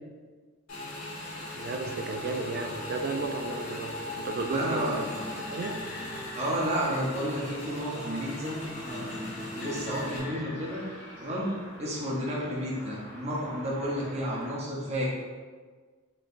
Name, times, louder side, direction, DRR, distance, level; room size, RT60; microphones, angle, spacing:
Motorcycle / Engine, 0.7-10.2, left 1 dB, 85° left, 1.4 m, -39 dB
sound 1, 1.3-14.5, equal, 10° left, 1.4 m, -48 dB
voice 1, 1.5-5.8, right 3 dB, 45° right, 5 dB, 0.3 m, -34 dB
sound 2, 2.6-10.6, left 1 dB, 55° left, 0.7 m, -43 dB
voice 2, 4.4-5.0 6.3-10.8 11.2-11.5 11.8-15.1, equal, 30° right, -5 dB, 0.8 m, -32 dB
4.2 x 3.2 x 2.5 m, 1.5 s
head